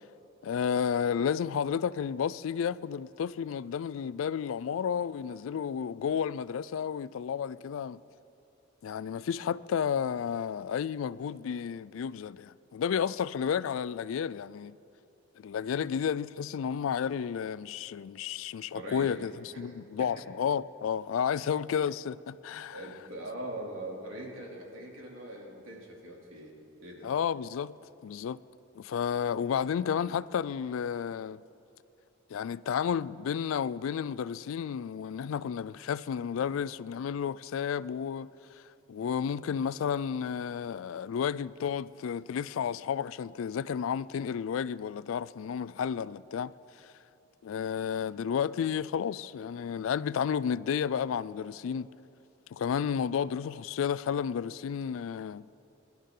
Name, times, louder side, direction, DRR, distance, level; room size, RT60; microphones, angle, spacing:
voice 1, 0.4-8.0 8.8-14.8 15.4-22.8 27.0-27.7 28.0-28.4 28.8-31.4 32.3-38.3 38.9-46.5 46.8-46.9 47.4-51.9 52.5-55.5, left 7 dB, 75° left, 0.3 m, -32 dB
voice 2, 18.7-19.2 19.5-19.7 20.0-20.1 22.7-26.5 26.8-27.1, right 1 dB, 80° right, 2.7 m, -42 dB
23.0 x 12.0 x 3.8 m
head